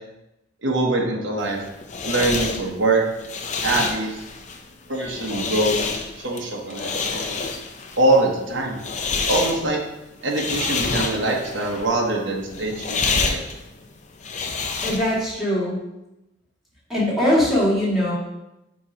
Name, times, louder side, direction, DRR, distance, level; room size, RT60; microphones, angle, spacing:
voice 1, 0.6-1.6 2.0-3.0 3.6-4.2 4.9-5.9 6.2-7.3 8.0-8.8 9.2-9.8 10.2-13.4, right 2 dB, 75° right, -1 dB, 1.0 m, -23 dB
sound 1, 1.4-15.3, left 4 dB, 40° left, 0.6 m, -28 dB
voice 2, 14.8-15.8 16.9-18.1, left 1 dB, ahead, -9 dB, 1.9 m, -21 dB
7.0 x 3.0 x 5.0 m, 0.91 s
head